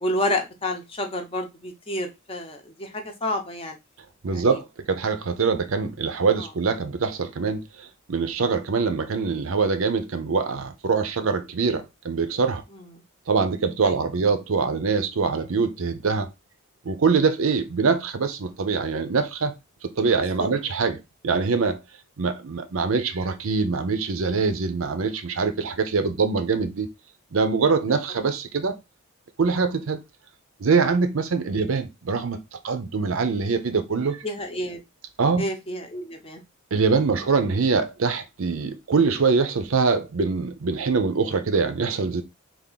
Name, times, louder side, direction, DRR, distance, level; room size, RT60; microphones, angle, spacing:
voice 1, 0.0-3.8 4.3-4.6 6.4-6.5 12.7-12.9 13.8-14.0 20.4-20.5 34.2-34.8 35.4-36.4 37.2-37.3, left 1 dB, 25° left, 0.7 m, -29 dB
voice 2, 4.2-12.6 13.3-16.3 16.8-19.6 19.8-21.0 21.2-21.8 22.2-26.9 27.3-28.8 29.4-30.0 30.6-32.4 32.6-34.2 35.2-35.5 36.7-42.2, right 4 dB, 70° right, 0.6 m, -24 dB
3.5 x 2.5 x 3.8 m
head